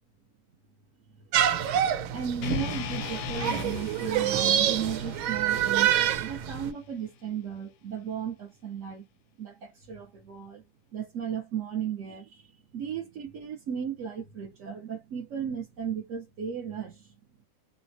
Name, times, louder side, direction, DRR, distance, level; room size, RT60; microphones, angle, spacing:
sound 1, 1.3-6.7, right 10 dB, 90° right, 1.4 m, -27 dB
voice 1, 1.4-1.7 2.1-5.9 6.2-9.1 9.4-10.6 10.9-17.1, right 8 dB, 70° right, 0.7 m, -35 dB
sound 2, 2.4-6.6, left 8 dB, 75° left, 1.0 m, -38 dB
3.3 x 2.0 x 2.6 m
omnidirectional pair, 2.1 m